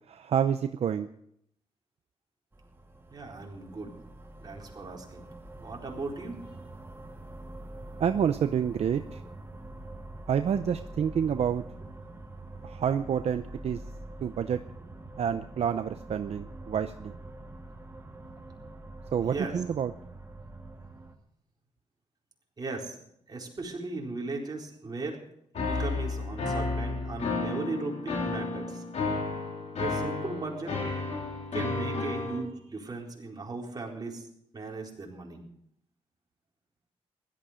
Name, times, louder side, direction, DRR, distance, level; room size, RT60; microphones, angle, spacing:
voice 1, 0.1-1.1 8.0-9.2 10.3-11.6 12.6-13.8 14.2-14.6 15.2-17.1 19.1-19.9, right 8 dB, 65° right, 9 dB, 0.7 m, -28 dB
sound 1, 2.5-21.1, right 2 dB, 20° right, 2.1 m, -45 dB
voice 2, 3.1-3.9 4.4-5.3 5.6-6.4 19.2-19.6 22.6-23.0 23.3-25.2 25.5-28.8 29.8-30.8 31.5-34.3 34.5-35.4, right 3 dB, 35° right, -1 dB, 4.2 m, -37 dB
sound 2, 25.5-32.4, left 3 dB, 75° left, 4.0 m, -32 dB
16.5 x 12.5 x 5.1 m, 0.72 s
cardioid pair, 85°, 11 cm